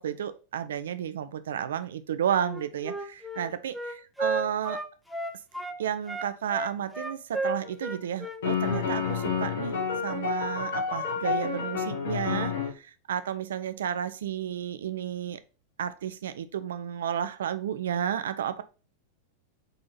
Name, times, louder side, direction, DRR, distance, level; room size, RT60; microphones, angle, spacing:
voice 1, 0.0-4.8 5.8-15.4 15.8-18.6, right 9 dB, 60° right, 0.4 m, -32 dB
Wind instrument woodwind instrument, 2.4-5.8 6.1-9.3, right 2 dB, ahead, 0.5 m, -34 dB
sound 1, 7.6-7.7 8.4-12.7, left 6 dB, 60° left, 1.0 m, -29 dB
3.9 x 2.8 x 4.0 m
figure-of-eight pair, 90°, 0 cm